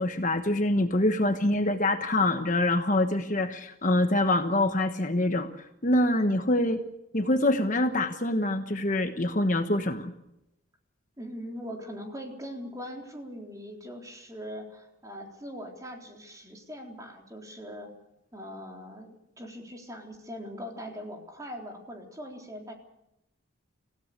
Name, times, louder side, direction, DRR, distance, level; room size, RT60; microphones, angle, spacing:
voice 1, 0.0-5.5 5.8-6.8 7.1-10.1, left 1 dB, 40° left, 7 dB, 1.3 m, -25 dB
voice 2, 11.2-17.9 18.3-22.7, equal, 15° right, 1 dB, 3.8 m, -41 dB
26.5 x 16.5 x 6.7 m, 0.84 s
head